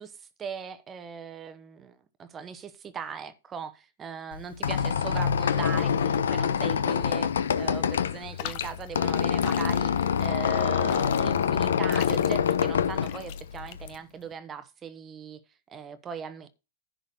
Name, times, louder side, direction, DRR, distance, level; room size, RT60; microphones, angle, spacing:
voice 1, 0.0-15.4 15.7-16.5, right 6 dB, 20° right, 0.9 m, -39 dB
Squeak, 4.3-13.9, left 7 dB, 80° left, 0.7 m, -26 dB
sound 1, 8.4-14.3, left 13 dB, 50° left, 0.8 m, -41 dB
10.5 x 3.9 x 6.7 m
hypercardioid pair, 125°, 0 cm